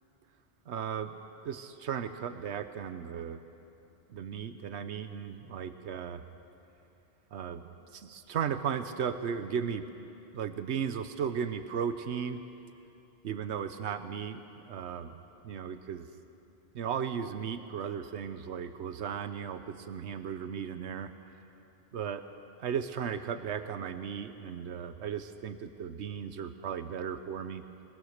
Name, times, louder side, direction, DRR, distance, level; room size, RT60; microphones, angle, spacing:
voice 1, 0.7-1.2 1.4-3.4 4.1-6.2 7.3-7.6 7.9-10.1 10.3-12.4 13.2-15.2 15.4-16.1 16.7-21.1 21.9-22.2 22.6-27.6, right 7 dB, 85° right, 10 dB, 1.1 m, -36 dB
22.0 x 21.0 x 6.5 m, 2.9 s
omnidirectional pair, 1.1 m